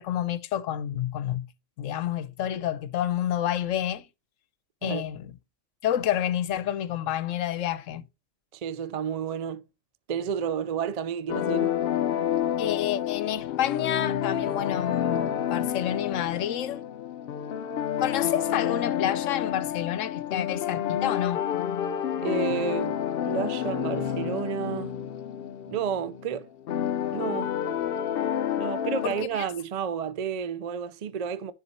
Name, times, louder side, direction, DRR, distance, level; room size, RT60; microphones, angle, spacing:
voice 1, 0.0-1.5 1.8-4.1 4.8-5.3 5.8-8.0 12.6-16.8 18.0-21.4 29.0-29.5, left 11 dB, 80° left, 1.0 m, -29 dB
voice 2, 8.5-9.7 10.1-11.7 22.2-24.9 25.7-26.5 27.1-27.5 28.6-31.5, right 7 dB, 50° right, 0.4 m, -31 dB
sound 1, 11.3-29.2, left 9 dB, 60° left, 0.7 m, -29 dB
10.0 x 4.2 x 4.1 m
omnidirectional pair, 1.3 m